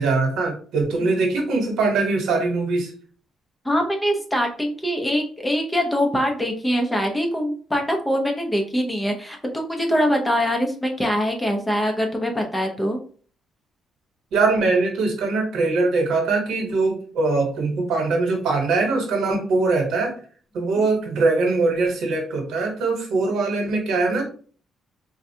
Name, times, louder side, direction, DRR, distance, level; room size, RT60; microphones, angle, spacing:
voice 1, 0.0-2.9 14.3-20.1 20.5-24.2, right 3 dB, 80° right, 2 dB, 1.1 m, -22 dB
voice 2, 3.6-13.0, equal, 10° left, 2 dB, 0.8 m, -23 dB
3.9 x 2.3 x 2.8 m, 0.43 s
cardioid pair, 90°, 0 cm